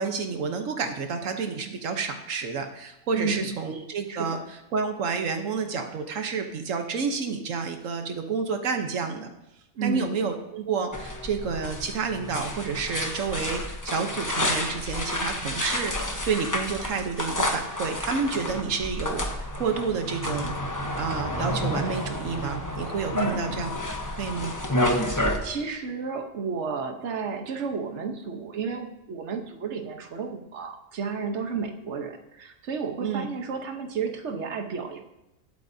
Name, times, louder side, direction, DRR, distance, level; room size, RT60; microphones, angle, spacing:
voice 1, 0.0-9.3 9.8-19.2 19.6-20.5 20.9-23.7 24.2-24.5 33.0-33.2, right 5 dB, 85° right, 5 dB, 1.3 m, -29 dB
voice 2, 3.1-3.5 4.1-4.3 9.8-10.1 23.1-23.6 24.9-35.0, right 5 dB, 65° right, 4 dB, 1.3 m, -32 dB
sound 1, 10.9-25.4, left 1 dB, 15° left, 0.9 m, -30 dB
20.0 x 8.4 x 2.7 m, 0.90 s
omnidirectional pair, 1.3 m